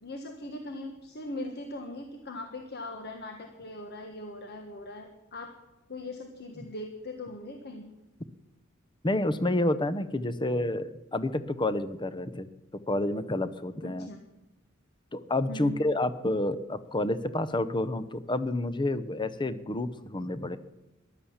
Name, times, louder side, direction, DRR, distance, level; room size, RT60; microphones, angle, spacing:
voice 1, 0.0-5.5 5.9-7.9 13.8-14.2 15.5-15.8, left 1 dB, 55° left, 4 dB, 1.4 m, -40 dB
voice 2, 9.0-12.5 12.9-14.1 15.1-20.6, left 1 dB, 25° left, 14 dB, 0.8 m, -29 dB
14.5 x 11.5 x 7.2 m, 0.99 s
head